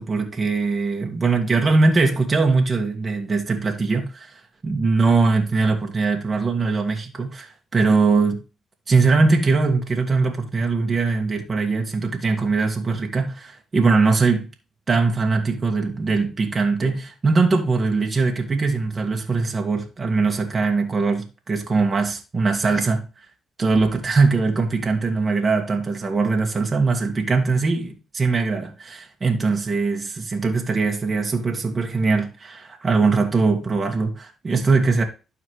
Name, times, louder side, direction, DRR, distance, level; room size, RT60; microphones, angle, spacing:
voice 1, 0.0-8.4 8.9-14.5 14.9-23.0 23.6-28.7 29.2-35.0, right 4 dB, 35° right, 1.9 m, -21 dB
12.0 x 4.3 x 3.2 m
supercardioid pair, 70°, 0 cm